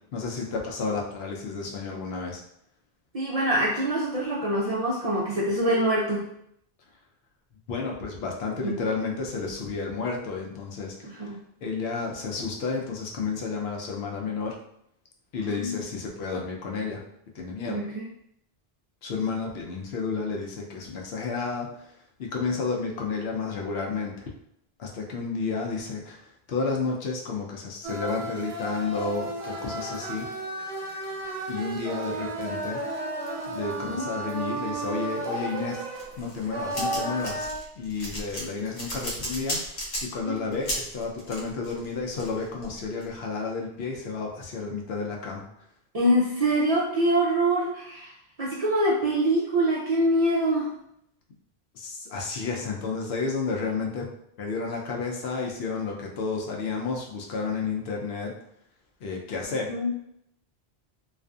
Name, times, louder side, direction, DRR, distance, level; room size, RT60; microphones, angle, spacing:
voice 1, 0.1-2.4 7.7-14.6 15.3-17.0 17.3-17.8 19.0-24.3 24.8-30.3 31.5-32.8 33.5-37.5 37.8-45.4 51.7-54.1 54.4-58.3 59.0-59.7, left 4 dB, 75° left, 0 dB, 0.8 m, -31 dB
voice 2, 3.1-6.3 8.6-8.7 11.2-11.4 15.4-15.8 17.6-18.1 33.8-34.1 40.3-40.5 45.9-50.7 59.7-59.9, right 1 dB, 55° right, -6 dB, 0.4 m, -25 dB
sound 1, 27.8-37.6, right 2 dB, 80° right, 0.8 m, -33 dB
sound 2, 36.0-43.1, equal, 50° left, 0.8 m, -34 dB
2.5 x 2.4 x 2.3 m, 0.73 s
omnidirectional pair, 1.1 m